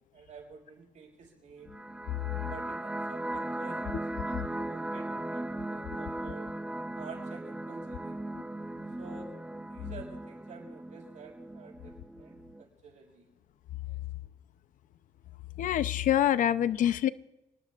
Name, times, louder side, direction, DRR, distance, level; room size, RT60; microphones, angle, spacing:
voice 1, 0.1-1.7 2.5-6.5 6.9-8.2 9.0-9.3 9.7-13.3 13.9-14.0, right 5 dB, 65° right, 0 dB, 6.1 m, -50 dB
sound 1, 1.6-12.6, right 1 dB, 10° right, 0.9 m, -38 dB
voice 2, 15.6-17.1, left 11 dB, 80° left, 14 dB, 0.7 m, -25 dB
28.0 x 19.5 x 2.5 m, 0.96 s
cardioid pair, 90°, 13 cm